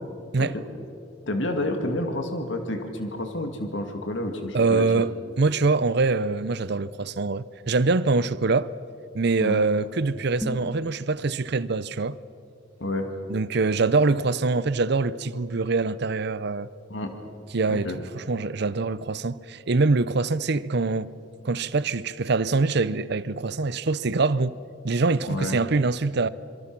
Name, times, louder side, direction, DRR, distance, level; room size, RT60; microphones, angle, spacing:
voice 1, 1.3-4.9 9.4-9.7 12.8-13.1 16.9-17.1 17.7-18.0 25.3-25.6, left 1 dB, 75° left, 2.1 m, -29 dB
voice 2, 4.5-8.7 9.1-12.2 13.3-16.7 17.5-21.1 21.4-24.6 24.8-26.3, right 3 dB, 60° right, 0.7 m, -24 dB
sound 1, 10.3-10.8, equal, 5° left, 2.4 m, -34 dB
26.5 x 24.0 x 6.1 m
head